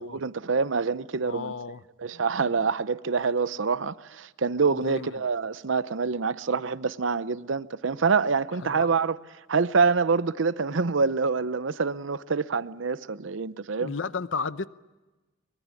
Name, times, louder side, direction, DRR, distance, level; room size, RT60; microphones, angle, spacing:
voice 1, 0.0-1.5 2.0-9.2 9.5-13.9, right 5 dB, 75° right, 0.7 m, -26 dB
voice 2, 1.2-1.8 2.1-2.6 4.8-5.1 8.6-8.9 13.8-14.7, left 4 dB, 70° left, 0.7 m, -34 dB
24.0 x 22.0 x 8.4 m
head